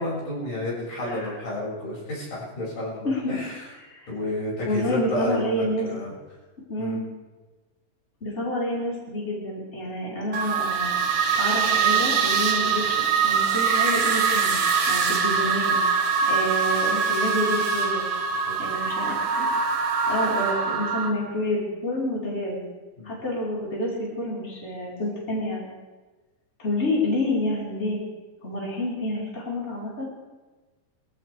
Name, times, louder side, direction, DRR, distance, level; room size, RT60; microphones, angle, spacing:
voice 1, 0.0-3.7 4.1-6.1 6.8-7.0 18.5-18.8 23.0-23.2, left 1 dB, 70° left, -6 dB, 8.5 m, -31 dB
voice 2, 1.0-1.3 3.0-3.3 3.8-4.1 4.6-5.9 6.7-7.0 8.2-11.0 11.4-14.6 14.9-15.8 16.3-18.1 18.6-19.5 20.1-22.6 23.0-25.7 26.6-28.0 28.4-30.1, left 1 dB, 20° left, -6 dB, 4.9 m, -28 dB
sound 1, 10.3-21.1, right 6 dB, 75° right, 3.3 m, -23 dB
25.0 x 15.5 x 3.6 m, 1.2 s
omnidirectional pair, 3.8 m